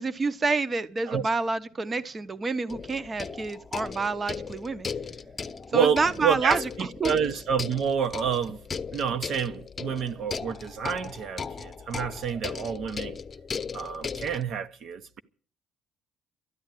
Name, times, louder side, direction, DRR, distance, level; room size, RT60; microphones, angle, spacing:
voice 1, 0.0-4.9 5.7-7.1, right 3 dB, 30° right, 0.8 m, -28 dB
sound 1, 2.7-14.4, left 5 dB, 30° left, 0.8 m, -37 dB
voice 2, 5.7-8.6 8.9-13.2 13.7-15.0, right 7 dB, 65° right, 1.0 m, -28 dB
13.0 x 9.4 x 9.1 m
cardioid pair, 95°, 0 cm